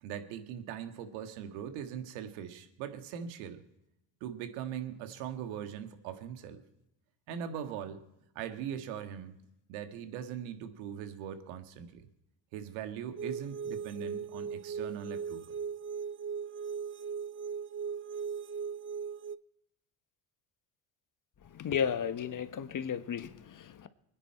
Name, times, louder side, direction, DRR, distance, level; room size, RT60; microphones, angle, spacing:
voice 1, 0.0-3.6 4.2-6.6 7.3-8.0 8.4-9.3 9.7-12.1 12.5-15.6, right 9 dB, 80° right, 1.8 m, -40 dB
sound 1, 13.2-19.4, right 6 dB, 25° right, 0.5 m, -38 dB
voice 2, 21.5-23.9, left 7 dB, 40° left, 1.3 m, -34 dB
25.0 x 9.9 x 4.4 m
hypercardioid pair, 70°, 49 cm